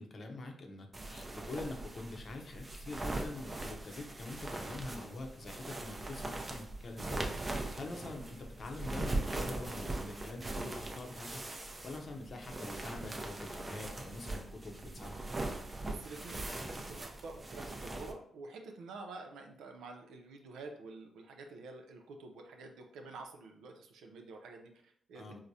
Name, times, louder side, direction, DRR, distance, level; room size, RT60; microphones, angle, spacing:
voice 1, 0.0-15.6 25.1-25.4, left 2 dB, 50° left, 3 dB, 0.7 m, -45 dB
sound 1, 0.9-18.1, right 2 dB, 25° right, 0.6 m, -41 dB
voice 2, 15.8-25.4, right 3 dB, 85° right, 3 dB, 0.5 m, -49 dB
4.6 x 2.1 x 2.7 m, 0.67 s
cardioid pair, 80°, 0 cm